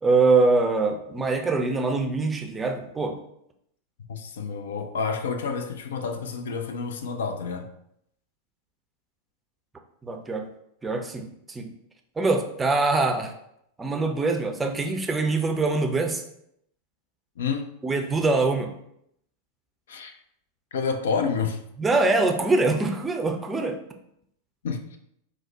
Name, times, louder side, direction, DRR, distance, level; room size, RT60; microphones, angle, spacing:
voice 1, 0.0-3.2 10.0-10.4 10.8-11.7 12.2-13.3 13.8-16.2 17.8-18.8 21.8-23.8, right 3 dB, 15° right, 0.5 m, -23 dB
voice 2, 4.1-7.7 17.4-17.7 19.9-20.1 20.7-21.6 24.6-25.0, left 5 dB, 60° left, 0.4 m, -29 dB
4.8 x 2.0 x 4.0 m
figure-of-eight pair, 90°, 0 cm